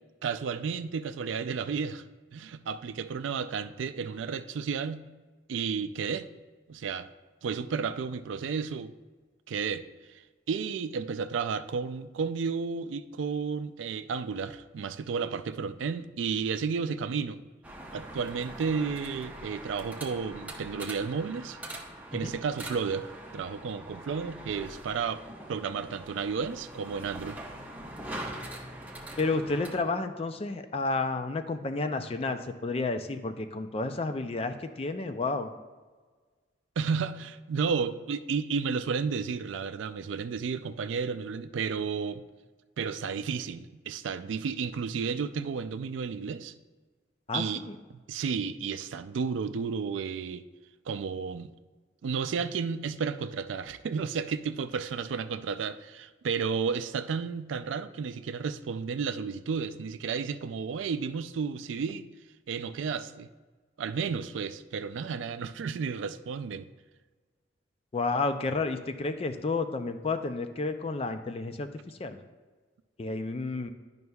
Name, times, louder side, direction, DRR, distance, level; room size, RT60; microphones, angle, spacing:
voice 1, 0.2-2.0 2.3-5.0 5.5-6.3 6.7-7.1 7.4-8.9 9.5-9.8 10.1-10.2 10.5-17.4 17.9-21.6 22.1-25.2 25.5-27.4 36.8-42.2 42.8-46.5 47.3-47.6 48.1-50.4 50.9-51.5 52.0-62.1 62.5-63.3 63.8-66.7, right 5 dB, 80° right, 11 dB, 0.4 m, -32 dB
sound 1, 17.6-29.8, right 1 dB, 10° right, 0.7 m, -43 dB
voice 2, 29.2-35.5 47.3-47.8 67.9-72.2 73.0-73.7, left 3 dB, 30° left, 8 dB, 0.4 m, -31 dB
11.0 x 5.3 x 2.3 m, 1.4 s
head